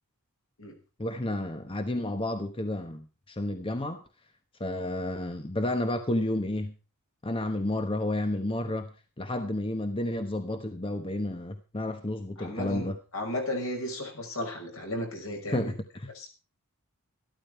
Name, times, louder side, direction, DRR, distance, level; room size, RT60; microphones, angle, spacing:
voice 1, 1.0-4.0 4.6-6.7 7.2-8.9 9.2-13.0 15.5-16.1, left 1 dB, 25° left, 8 dB, 1.0 m, -31 dB
voice 2, 12.4-12.9 13.1-15.7 16.1-16.3, left 1 dB, 65° left, 3 dB, 5.5 m, -34 dB
14.0 x 13.0 x 4.6 m, 0.33 s
head